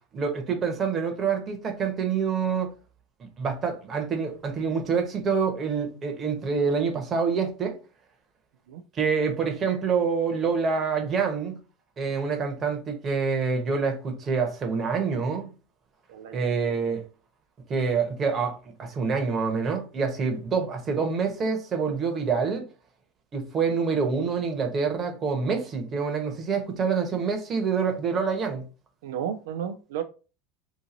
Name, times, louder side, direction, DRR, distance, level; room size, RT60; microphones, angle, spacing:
voice 1, 0.1-2.7 3.2-7.8 8.9-11.6 12.0-15.5 16.3-17.0 17.7-22.7 23.3-28.6, right 5 dB, 30° right, 1.0 m, -26 dB
voice 2, 16.1-16.5 29.0-30.0, right 9 dB, 85° right, 0.3 m, -33 dB
2.9 x 2.6 x 3.7 m
supercardioid pair, 130°, 0 cm